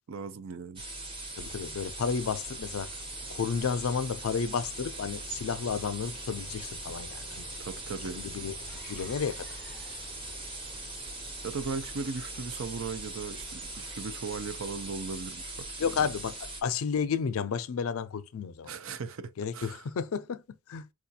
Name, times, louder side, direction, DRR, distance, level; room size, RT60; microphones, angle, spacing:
voice 1, 0.1-0.8 7.6-8.2 11.4-16.1 18.7-19.8, right 4 dB, 70° right, 0.5 m, -38 dB
sound 1, 0.8-16.6, right 2 dB, 25° right, 0.9 m, -41 dB
voice 2, 1.4-2.9 3.3-7.5 8.1-8.5 8.8-9.5 15.8-18.7 19.4-20.4 20.7-20.9, left 6 dB, 80° left, 0.4 m, -32 dB
sound 2, 1.4-14.7, left 1 dB, ahead, 0.4 m, -53 dB
4.7 x 2.4 x 2.7 m
head